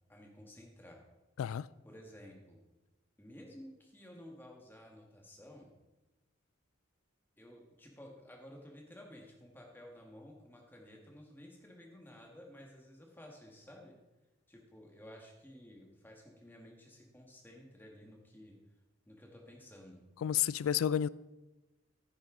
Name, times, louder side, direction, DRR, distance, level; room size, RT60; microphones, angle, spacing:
voice 1, 0.1-1.0 1.8-2.6 3.2-5.7 7.4-14.0 14.5-18.6 19.0-20.0, left 1 dB, 10° left, 1.6 m, -54 dB
voice 2, 20.2-21.1, left 9 dB, 90° left, 0.3 m, -30 dB
9.9 x 9.6 x 3.8 m
head